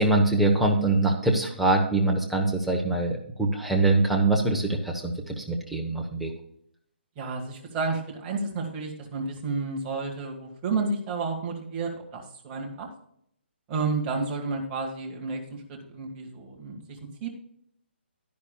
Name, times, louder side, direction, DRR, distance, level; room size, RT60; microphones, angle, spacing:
voice 1, 0.0-6.3, right 2 dB, ahead, -1 dB, 1.0 m, -23 dB
voice 2, 7.1-12.9 13.7-17.3, right 4 dB, 20° right, 0 dB, 1.8 m, -31 dB
12.0 x 10.5 x 2.3 m, 0.69 s
hypercardioid pair, 165°, 6 cm